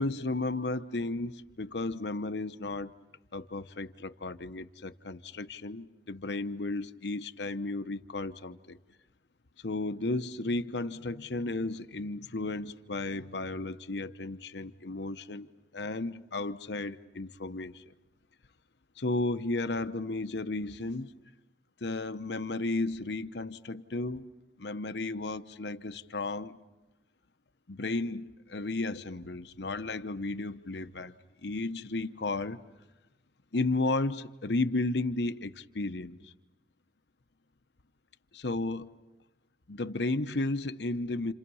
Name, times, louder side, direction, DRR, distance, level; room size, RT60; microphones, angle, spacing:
voice 1, 0.0-2.9 3.3-8.8 9.6-17.8 19.0-21.1 21.8-24.3 24.6-26.6 27.7-31.1 31.4-32.6 33.5-36.3 38.3-38.9 39.7-41.3, left 2 dB, 80° left, 0.9 m, -33 dB
30.0 x 28.0 x 5.6 m
head